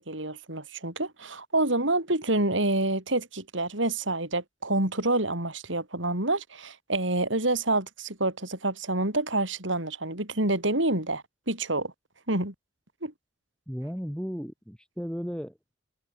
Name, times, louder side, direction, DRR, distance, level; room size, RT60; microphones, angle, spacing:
voice 1, 0.0-11.9 12.3-12.5 13.0-13.1, right 2 dB, 80° right, 6.6 m, -27 dB
voice 2, 13.7-15.6, equal, 5° left, 7.5 m, -35 dB
head